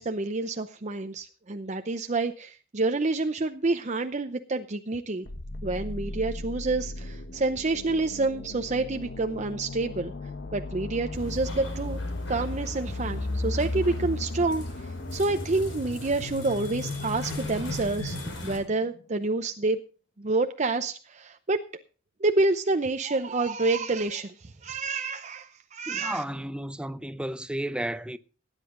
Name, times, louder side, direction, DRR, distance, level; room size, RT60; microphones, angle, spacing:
voice 1, 0.0-5.3 5.6-10.1 10.5-12.0 12.3-18.2 18.4-19.8 20.2-21.6 22.2-26.2, right 3 dB, 35° right, 0.7 m, -28 dB
sound 1, 5.3-19.0, left 2 dB, 60° left, 1.2 m, -36 dB
sound 2, 11.1-18.6, left 2 dB, 80° left, 5.0 m, -40 dB
voice 2, 25.9-28.2, right 1 dB, 5° right, 0.6 m, -33 dB
18.5 x 9.9 x 3.8 m
head